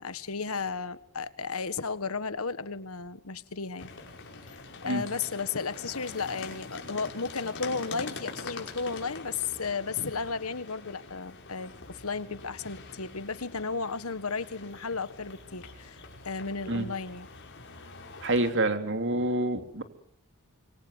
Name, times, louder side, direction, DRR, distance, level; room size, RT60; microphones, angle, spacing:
voice 1, 0.0-3.9 4.5-16.0 16.2-17.3, left 4 dB, 75° left, 14 dB, 1.5 m, -34 dB
sound 1, 3.8-18.5, left 3 dB, 55° left, 5.5 m, -44 dB
voice 2, 18.2-19.8, right 1 dB, 60° right, 7 dB, 3.3 m, -27 dB
27.0 x 22.5 x 8.1 m, 0.69 s
head